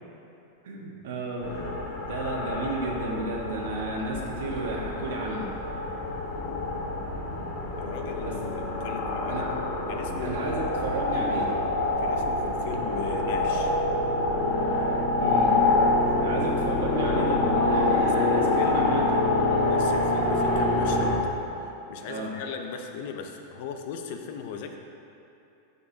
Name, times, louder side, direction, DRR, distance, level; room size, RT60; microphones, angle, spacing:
voice 1, 0.6-1.5 2.1-5.5 8.2-8.3 9.3-9.5 10.2-11.5 15.2-15.6 16.2-18.5 18.7-19.0 19.4-19.6 22.1-22.3, right 2 dB, 75° right, -2 dB, 1.5 m, -32 dB
sound 1, 1.4-21.1, left 2 dB, 40° left, 1.4 m, -26 dB
voice 2, 7.8-9.6 9.9-10.5 12.0-13.7 15.9-16.4 17.8-18.9 19.6-21.2 21.6-24.8, left 6 dB, 55° left, 5 dB, 0.7 m, -37 dB
12.5 x 5.4 x 2.8 m, 2.9 s
supercardioid pair, 150°, 0 cm